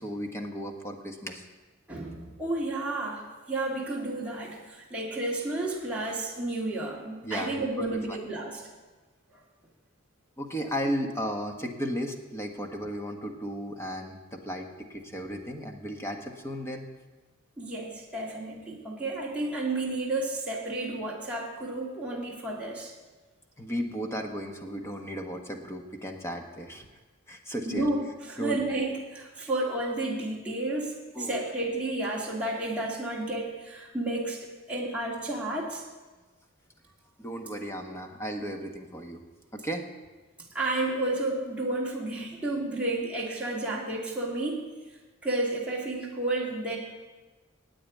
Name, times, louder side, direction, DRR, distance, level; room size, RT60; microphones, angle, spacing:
voice 1, 0.0-1.5 7.2-8.2 10.4-16.9 23.6-26.9 27.3-27.9 28.4-28.6 31.1-31.3 37.2-39.2 39.5-39.9, equal, 15° left, 3 dB, 1.2 m, -35 dB
voice 2, 1.9-8.6 17.6-22.9 27.6-34.4 34.7-35.8 40.5-44.6 45.2-46.8, right 2 dB, 5° right, -5 dB, 2.1 m, -31 dB
8.8 x 8.7 x 9.0 m, 1.3 s
head